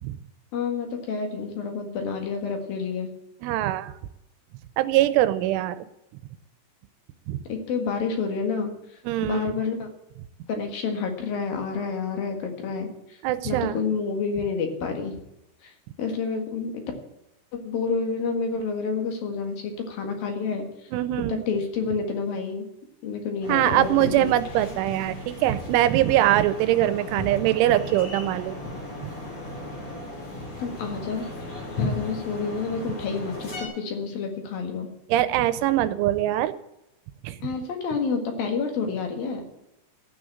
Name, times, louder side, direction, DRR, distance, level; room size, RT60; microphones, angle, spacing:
voice 1, 0.5-3.1 7.5-8.7 9.2-9.9 10.5-12.9 13.5-15.1 15.6-15.7 16.0-16.8 17.5-20.6 21.3-22.7 23.0-24.3 30.6-31.3 31.8-34.9 37.4-39.4, left 5 dB, 60° left, 3 dB, 3.1 m, -29 dB
voice 2, 3.4-3.9 4.8-5.9 7.3-7.4 9.1-9.6 13.2-13.8 20.9-21.4 23.5-28.6 29.0-29.1 35.1-36.5 37.2-37.4, right 14 dB, 90° right, 12 dB, 3.2 m, -23 dB
sound 1, 23.4-33.7, left 2 dB, 30° left, 3.3 m, -36 dB
14.5 x 6.4 x 8.5 m, 0.88 s
omnidirectional pair, 5.4 m